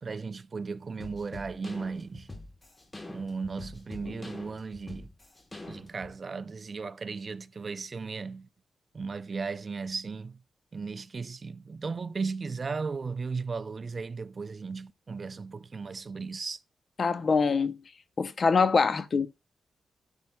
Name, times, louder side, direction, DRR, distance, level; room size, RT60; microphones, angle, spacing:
voice 1, 0.0-2.3 3.1-5.1 5.7-8.5 8.9-10.4 10.7-16.6, right 4 dB, 45° right, 0.4 m, -36 dB
sound 1, 1.0-6.1, left 2 dB, 20° left, 1.3 m, -44 dB
voice 2, 17.0-17.8 18.2-19.3, left 5 dB, 50° left, 0.6 m, -24 dB
12.0 x 5.5 x 2.2 m
cardioid pair, 85°, 0 cm